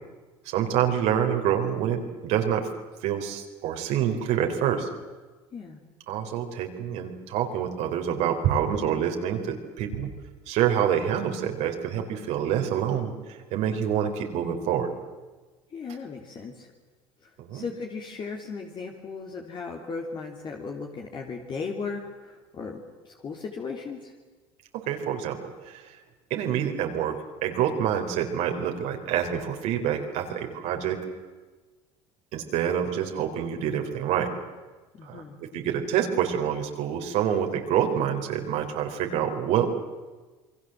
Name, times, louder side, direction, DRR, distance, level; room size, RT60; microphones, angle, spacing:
voice 1, 0.5-2.7 3.0-4.9 6.1-10.1 10.5-14.9 17.4-17.6 24.7-26.0 26.3-31.0 32.3-34.3 35.0-35.2 35.5-39.7, right 9 dB, 70° right, 3 dB, 3.8 m, -27 dB
voice 2, 15.7-16.7 17.2-24.1 34.9-35.4, left 4 dB, 40° left, 1 dB, 3.4 m, -37 dB
28.0 x 22.0 x 7.7 m, 1.3 s
supercardioid pair, 90°, 12 cm